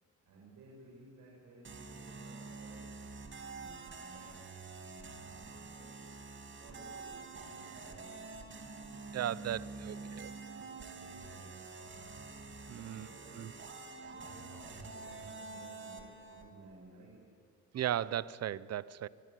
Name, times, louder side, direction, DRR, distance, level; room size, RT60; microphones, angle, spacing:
voice 1, 0.2-2.9 3.5-4.5 5.3-6.1 6.5-8.2 9.5-10.3 10.6-11.6 12.7-13.5 14.0-17.3, right 2 dB, 80° right, 6.8 m, -57 dB
sound 1, 1.6-16.5, right 4 dB, 40° right, 3.1 m, -47 dB
voice 2, 9.1-10.3 12.7-13.1 13.4-13.5 17.7-19.1, right 11 dB, 55° right, 0.8 m, -36 dB
25.0 x 21.0 x 9.3 m
cardioid pair, 90°, 30 cm